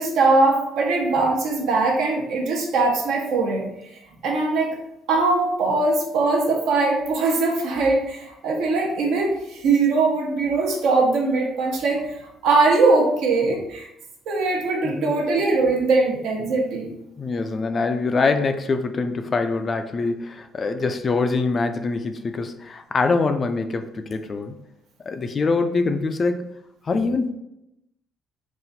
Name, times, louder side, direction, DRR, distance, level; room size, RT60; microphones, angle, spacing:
voice 1, 0.0-3.7 4.2-4.8 5.1-13.9 14.3-16.9, right 3 dB, 70° right, 0 dB, 1.0 m, -21 dB
voice 2, 17.2-24.6 25.1-26.5 26.8-27.3, left 3 dB, 30° left, 7 dB, 0.3 m, -24 dB
3.9 x 2.5 x 4.0 m, 0.84 s
cardioid pair, 145°, 0 cm